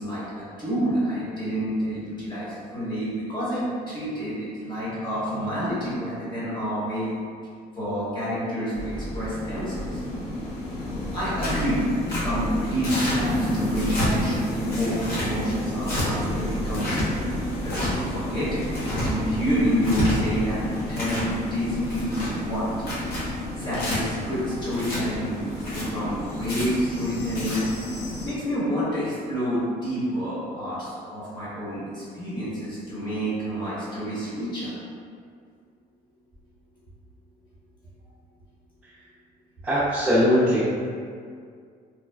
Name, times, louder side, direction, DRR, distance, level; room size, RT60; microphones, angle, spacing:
voice 1, 0.0-7.1 7.7-10.0 11.1-11.8 12.2-16.9 17.6-20.6 20.9-21.2 21.5-22.6 23.6-25.4 25.7-27.6 28.2-34.7, equal, 25° left, -10 dB, 1.2 m, -28 dB
sound 1, 8.7-28.3, left 1 dB, 90° left, 0.7 m, -31 dB
Tearing, 11.4-11.6 12.1-12.2 12.8-13.2 13.7-14.1 14.7-15.3 15.8-16.1 16.7-17.0 17.6-17.9 18.6-19.1 19.7-20.1 20.7-21.3 21.8-22.3 22.8-23.2 23.7-24.0 24.7-25.0 25.6-25.8 26.4-26.6 27.2-27.6, left 1 dB, 65° left, 0.9 m, -30 dB
voice 2, 39.6-40.6, equal, 10° right, -13 dB, 0.6 m, -20 dB
3.1 x 2.2 x 2.2 m, 2.2 s
cardioid pair, 110°, 17 cm